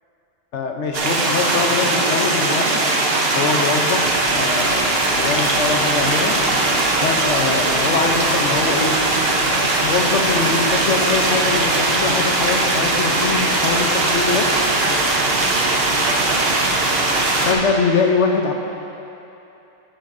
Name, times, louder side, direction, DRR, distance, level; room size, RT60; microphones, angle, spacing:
voice 1, 0.5-2.8 3.3-4.0 4.3-6.3 7.0-9.0 9.8-14.5 17.5-18.5, left 4 dB, 60° left, 3 dB, 1.0 m, -22 dB
sound 1, 0.9-17.5, right 2 dB, 50° right, 1.0 m, -19 dB
sound 2, 3.5-17.6, equal, 80° left, 2.1 m, -40 dB
13.0 x 8.8 x 2.6 m, 2.9 s
omnidirectional pair, 1.5 m